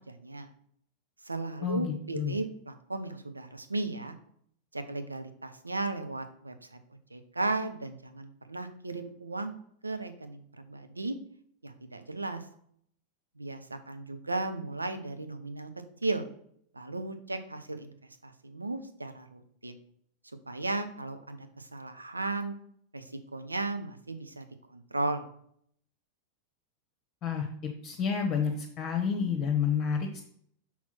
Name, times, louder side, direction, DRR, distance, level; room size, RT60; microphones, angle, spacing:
voice 1, 0.1-0.5 1.2-4.1 4.7-6.8 7.1-9.6 9.8-11.2 11.6-12.4 13.4-15.7 16.0-16.3 16.7-17.9 18.2-19.8 20.5-22.5 22.9-25.2, right 2 dB, 80° right, 8 dB, 0.7 m, -35 dB
voice 2, 1.6-2.4 27.2-27.5 27.8-30.2, left 7 dB, 35° left, 1 dB, 1.1 m, -29 dB
6.1 x 4.3 x 5.8 m, 0.65 s
figure-of-eight pair, 90°, 0 cm